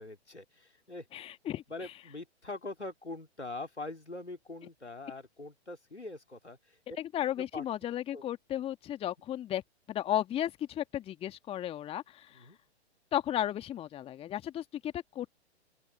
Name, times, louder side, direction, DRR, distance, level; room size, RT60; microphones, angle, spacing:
voice 1, 0.0-1.1 1.7-7.0 7.4-7.6 8.1-8.3 12.3-12.6, left 2 dB, 90° left, 3.0 m, -43 dB
voice 2, 1.1-1.6 7.0-9.6 9.9-12.4 13.1-15.3, left 11 dB, 15° left, 1.9 m, -34 dB
open air
figure-of-eight pair, 115°, 33 cm